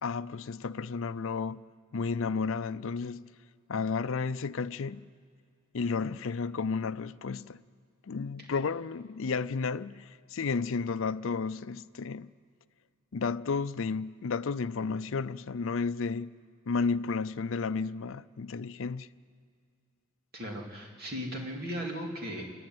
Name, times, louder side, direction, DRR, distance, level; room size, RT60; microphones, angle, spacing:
voice 1, 0.0-1.6 1.9-3.3 3.7-5.1 5.7-7.6 8.1-12.3 13.1-16.3 16.7-19.1, left 4 dB, 65° left, 0.5 m, -32 dB
voice 2, 20.3-22.5, equal, 45° right, 3.0 m, -37 dB
28.5 x 11.5 x 9.5 m
head